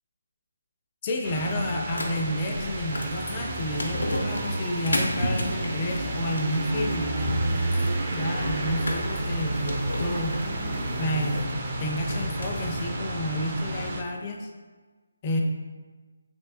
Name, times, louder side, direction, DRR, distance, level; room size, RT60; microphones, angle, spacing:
voice 1, 1.0-7.2 8.1-10.4 11.0-14.5 15.2-15.4, left 1 dB, 25° left, 1 dB, 0.4 m, -30 dB
sound 1, 1.2-14.0, right 2 dB, 35° right, 0.4 m, -31 dB
sound 2, 1.9-12.9, left 1 dB, 90° left, 0.6 m, -34 dB
3.4 x 2.9 x 2.7 m, 1.4 s
figure-of-eight pair, 165°, 0 cm